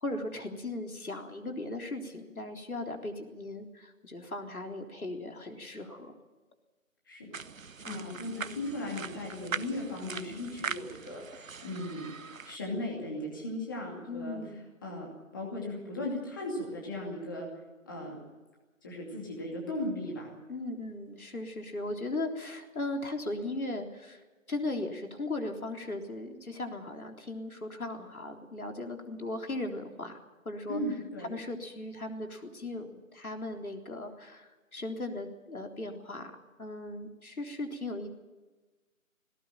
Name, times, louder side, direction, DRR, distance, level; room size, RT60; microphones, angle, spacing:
voice 1, 0.0-6.1 7.9-8.2 14.1-14.6 20.5-30.2 30.5-30.8 31.2-38.1, left 2 dB, 90° left, 3 dB, 3.8 m, -38 dB
sound 1, 7.3-12.6, right 5 dB, 70° right, 0.9 m, -41 dB
voice 2, 7.8-12.0 12.4-14.4 14.8-15.1 15.3-17.5 17.8-18.2 18.8-20.4 30.7-31.3, left 1 dB, 15° left, -2 dB, 2.6 m, -37 dB
18.5 x 18.0 x 9.1 m, 1.2 s
figure-of-eight pair, 175°, 42 cm